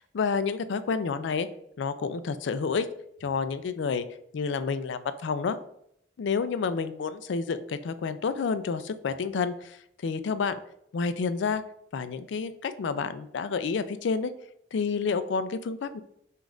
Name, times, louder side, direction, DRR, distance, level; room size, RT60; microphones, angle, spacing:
voice 1, 0.0-1.5 1.8-2.9 3.2-4.0 4.3-5.6 6.2-9.8 10.0-10.6 10.9-11.6 11.9-14.3 14.7-16.0, left 5 dB, 70° left, 12 dB, 0.4 m, -29 dB
5.1 x 2.5 x 3.7 m, 0.72 s
head